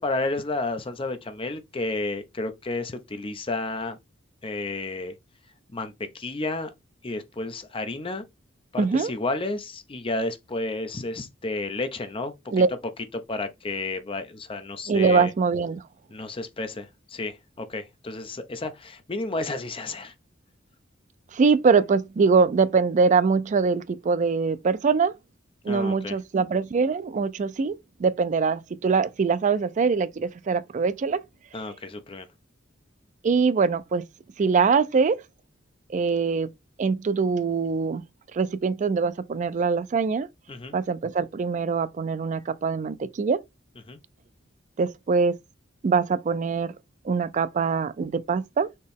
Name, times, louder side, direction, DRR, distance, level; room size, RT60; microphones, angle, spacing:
voice 1, 0.0-4.0 4.4-5.1 5.7-6.7 7.0-8.2 8.7-12.5 13.1-15.3 16.1-20.1 25.7-26.2 31.5-32.3 40.5-40.8 43.9-44.0, left 2 dB, 30° left, 0.6 m, -31 dB
voice 2, 8.8-9.1 12.5-12.7 14.9-15.8 21.3-25.2 25.6-27.7 28.0-31.2 33.2-34.0 34.4-35.2 35.9-36.5 36.8-38.0 38.3-40.3 40.7-43.4 44.8-45.3 45.8-46.7 47.0-48.7, right 5 dB, 40° right, 0.4 m, -23 dB
4.3 x 3.0 x 3.4 m
head